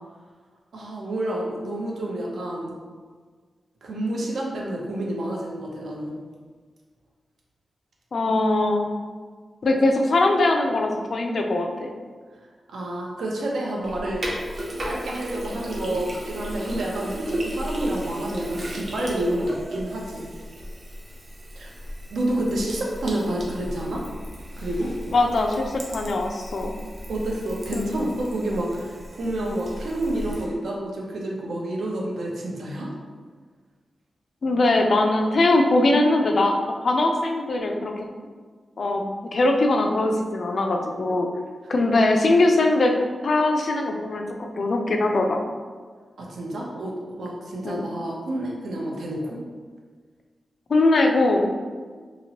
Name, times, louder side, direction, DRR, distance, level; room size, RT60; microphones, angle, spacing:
voice 1, 0.7-2.7 3.8-6.2 12.7-14.3 14.8-20.3 21.6-21.7 22.1-24.0 24.5-24.9 27.1-32.9 46.2-49.4, right 1 dB, 85° right, -2 dB, 0.6 m, -29 dB
voice 2, 8.1-8.9 9.6-11.9 25.1-26.8 27.7-27.9 34.4-38.1 38.8-41.3 41.7-42.9 43.2-45.4 47.6-47.9 50.7-51.5, left 2 dB, 50° left, 3 dB, 0.3 m, -21 dB
Sink (filling or washing), 13.8-30.4, equal, 45° right, 0.6 m, -35 dB
2.9 x 2.9 x 2.8 m, 1.5 s
wide cardioid pair, 170°, 0 cm